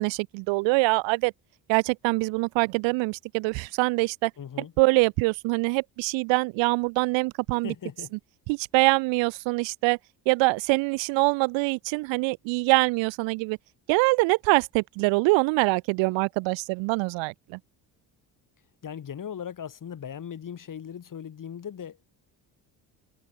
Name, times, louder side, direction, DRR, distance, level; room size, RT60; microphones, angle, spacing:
voice 1, 0.0-1.3 1.7-4.3 4.8-7.7 8.5-10.0 10.3-13.6 13.9-17.6, right 26 dB, 80° right, 0.6 m, -24 dB
voice 2, 4.4-4.7 7.6-8.1 18.8-22.1, left 8 dB, 45° left, 5.4 m, -38 dB
cardioid pair, 100°, 45 cm